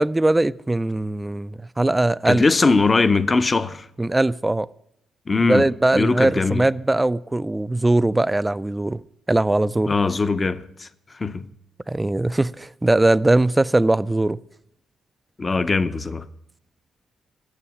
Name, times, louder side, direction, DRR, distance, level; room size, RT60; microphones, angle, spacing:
voice 1, 0.0-2.4 4.0-4.7 5.4-9.0 9.3-9.9 11.9-14.4, right 2 dB, 15° right, 0.3 m, -20 dB
voice 2, 2.3-3.9 5.3-5.7 5.9-6.6 9.9-10.9 11.1-11.5 15.4-16.3, left 3 dB, 30° left, 0.6 m, -20 dB
9.8 x 7.0 x 8.6 m
cardioid pair, 90°, 0 cm